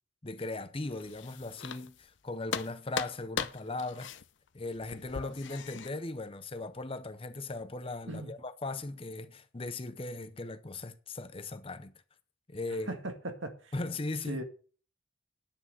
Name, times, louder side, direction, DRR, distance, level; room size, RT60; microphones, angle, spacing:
voice 1, 0.2-4.1 4.5-11.9 12.5-13.0 13.7-14.4, left 2 dB, 25° left, 0.7 m, -38 dB
sound 1, 0.8-2.2 2.5-5.9, left 6 dB, 65° left, 0.7 m, -39 dB
voice 2, 12.9-13.7 14.3-14.4, right 2 dB, 70° right, 1.9 m, -38 dB
9.9 x 6.0 x 7.7 m
head